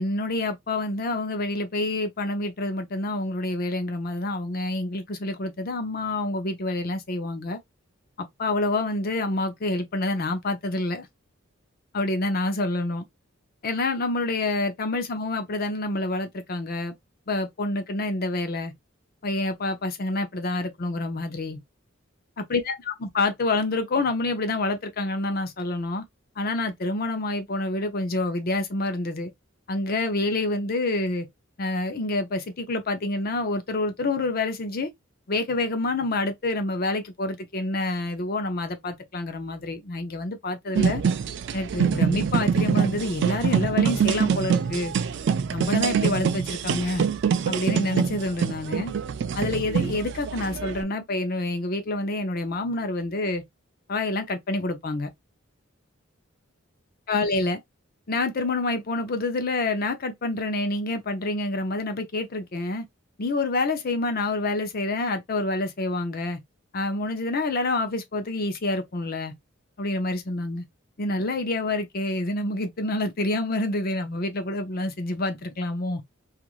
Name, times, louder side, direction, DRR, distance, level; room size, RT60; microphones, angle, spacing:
voice 1, 0.0-7.6 8.4-11.1 11.9-13.0 13.6-16.9 17.3-18.7 19.2-21.6 22.4-26.0 26.4-29.3 29.7-31.3 31.6-34.9 35.3-41.0 41.5-44.9 45.5-47.1 47.5-48.9 49.3-53.4 53.9-55.1 57.1-57.6 58.1-62.9 63.2-66.4 66.7-69.3 69.8-70.7 71.0-76.0, left 2 dB, 45° left, 0.6 m, -27 dB
sound 1, 40.7-50.8, right 6 dB, 60° right, 0.3 m, -25 dB
3.0 x 2.5 x 2.3 m
head